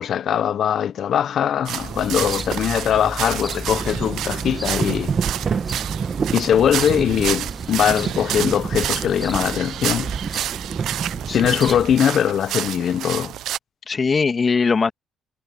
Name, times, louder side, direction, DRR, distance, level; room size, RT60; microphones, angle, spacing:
voice 1, 0.0-5.2 6.3-10.5 11.3-13.3, left 9 dB, 65° left, 0.9 m, -21 dB
sound 1, 1.7-13.6, right 12 dB, 80° right, 0.6 m, -30 dB
sound 2, 1.8-12.0, right 2 dB, 15° right, 1.8 m, -36 dB
sound 3, 3.6-12.4, right 6 dB, 45° right, 1.7 m, -29 dB
voice 2, 11.3-11.8 13.9-14.9, left 5 dB, 35° left, 2.3 m, -21 dB
cardioid pair, 90°, 0 cm